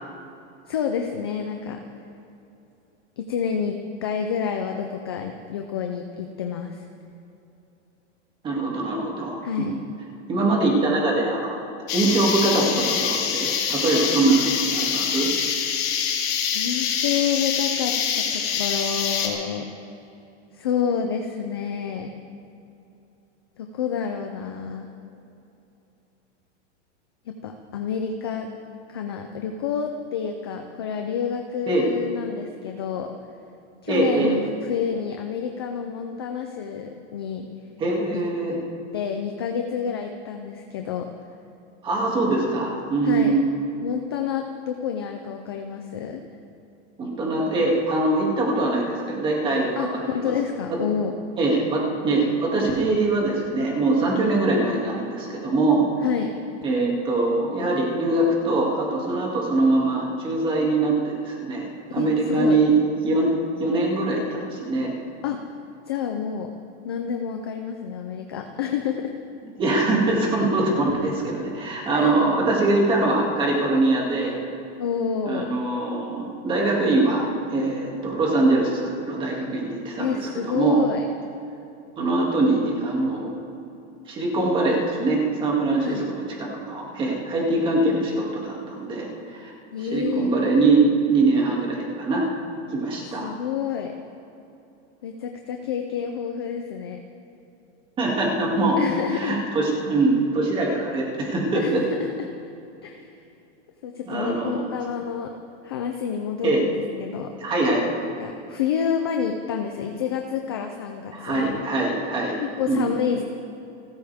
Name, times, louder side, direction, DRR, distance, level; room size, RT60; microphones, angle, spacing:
voice 1, 0.7-1.8 3.2-6.9 9.4-9.7 16.5-19.7 20.5-22.1 23.6-24.9 27.3-28.5 28.9-33.1 33.8-37.5 38.1-38.2 38.9-41.1 43.0-43.4 43.8-46.2 49.8-51.1 56.0-56.3 62.0-62.6 65.2-65.4 65.9-66.5 66.8-69.1 71.9-72.2 74.8-75.6 80.0-81.1 85.8-86.1 89.7-90.3 93.2-93.9 95.0-97.0 98.8-99.4 101.5-102.3 102.8-103.2 103.8-105.3 105.6-107.3 108.2-111.6 112.4-113.2, left 7 dB, 20° left, 4 dB, 0.4 m, -28 dB
voice 2, 8.4-9.8 10.3-15.3 31.7-31.8 33.9-34.3 37.8-38.6 41.8-43.5 47.0-50.3 51.4-55.9 56.6-62.7 63.0-63.3 63.6-64.9 69.6-74.4 75.3-80.8 82.0-83.4 84.1-89.5 89.8-92.2 92.7-93.3 98.0-98.8 99.1-101.8 104.1-104.7 106.4-106.6 107.4-107.9 111.1-112.4 112.7-112.9, right 2 dB, 15° right, -2 dB, 2.3 m, -23 dB
sound 1, 11.9-19.3, left 7 dB, 55° left, 3.5 m, -25 dB
30.0 x 13.5 x 3.5 m, 2.8 s
supercardioid pair, 180°, 36 cm